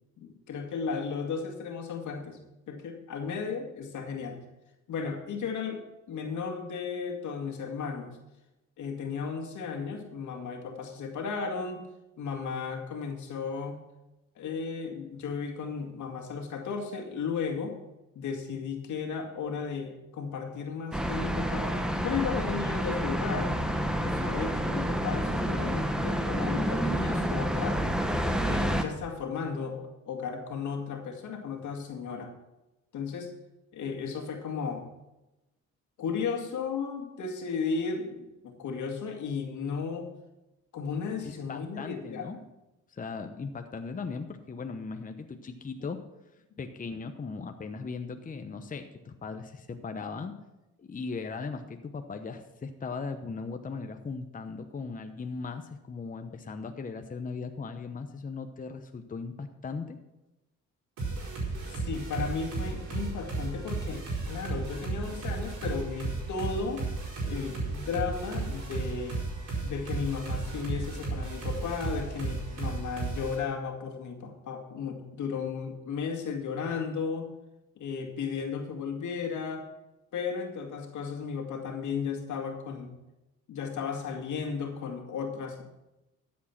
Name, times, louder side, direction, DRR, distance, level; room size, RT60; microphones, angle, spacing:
voice 1, 0.2-2.4 2.7-4.4 4.9-5.8 6.1-8.2 8.8-11.9 12.2-13.8 14.4-17.8 18.2-23.5 24.0-27.8 28.4-32.3 32.9-33.3 33.7-34.9 36.0-40.1 40.7-42.4 61.7-66.8 67.2-69.2 69.6-77.3 77.8-79.7 80.1-82.9 83.5-85.6, left 5 dB, 75° left, 4 dB, 2.0 m, -34 dB
sound 1, 20.9-28.8, equal, ahead, 1.2 m, -29 dB
voice 2, 41.2-42.4 42.9-46.0 46.6-50.3 50.8-60.0, left 4 dB, 25° left, 6 dB, 0.9 m, -38 dB
sound 2, 61.0-73.3, right 3 dB, 80° right, 4.9 m, -34 dB
12.5 x 7.5 x 5.9 m, 0.98 s
cardioid pair, 90°, 30 cm